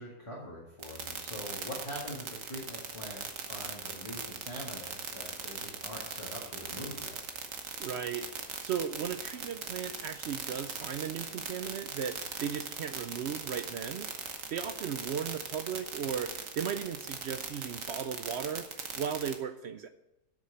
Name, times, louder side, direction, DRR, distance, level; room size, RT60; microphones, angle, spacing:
voice 1, 0.0-7.2, left 1 dB, 20° left, -4 dB, 2.0 m, -43 dB
sound 1, 0.8-19.3, right 6 dB, 55° right, 1.4 m, -39 dB
voice 2, 7.8-8.3 8.6-14.1 14.5-18.7 19.0-19.9, right 8 dB, 80° right, 9 dB, 0.5 m, -36 dB
8.3 x 6.5 x 8.0 m, 0.94 s
omnidirectional pair, 1.7 m